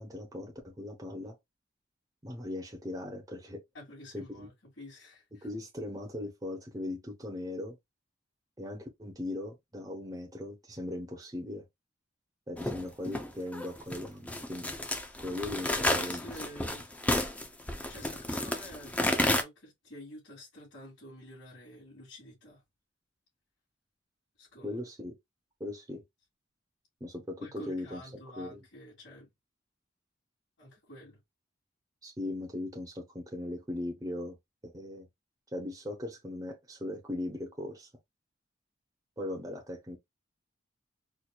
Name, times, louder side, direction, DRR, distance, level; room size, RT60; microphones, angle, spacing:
voice 1, 0.0-1.3 2.2-3.6 4.1-4.5 5.4-7.8 8.6-11.6 12.5-14.7 15.2-16.3 24.6-25.1 25.6-26.0 27.0-28.0 28.4-28.6 32.0-34.4 34.6-35.1 35.5-37.9 39.2-40.0, left 1 dB, 20° right, 0.8 m, -39 dB
voice 2, 3.7-5.5 15.8-16.9 17.9-22.6 24.4-24.8 27.4-29.3 30.6-31.2, left 1 dB, 80° left, 2.4 m, -49 dB
sound 1, 12.6-19.4, left 1 dB, 5° left, 0.5 m, -31 dB
4.5 x 2.5 x 2.4 m
head